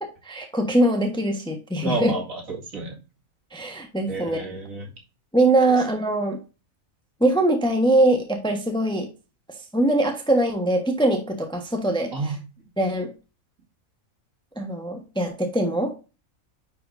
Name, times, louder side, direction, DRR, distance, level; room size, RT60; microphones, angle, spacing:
voice 1, 0.0-2.1 3.5-4.4 5.3-6.4 7.2-9.1 9.7-12.1 12.8-13.1 14.6-15.9, right 1 dB, 5° left, 4 dB, 1.1 m, -22 dB
voice 2, 1.8-3.0 4.1-4.9 12.1-12.4, right 3 dB, 70° right, -1 dB, 2.5 m, -30 dB
9.9 x 4.7 x 2.6 m, 0.30 s
omnidirectional pair, 1.5 m